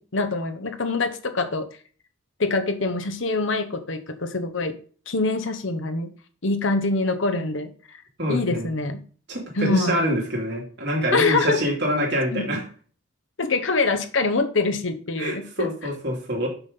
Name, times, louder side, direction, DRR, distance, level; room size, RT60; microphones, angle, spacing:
voice 1, 0.0-1.7 2.4-4.7 5.1-6.1 6.4-7.7 8.3-9.0 9.6-10.0 11.1-11.6 12.3-12.5 13.4-15.7, left 3 dB, 75° left, 8 dB, 1.0 m, -24 dB
voice 2, 8.2-8.7 9.3-12.6 15.2-16.5, equal, 55° right, -1 dB, 2.9 m, -25 dB
6.1 x 5.8 x 5.3 m, 0.43 s
head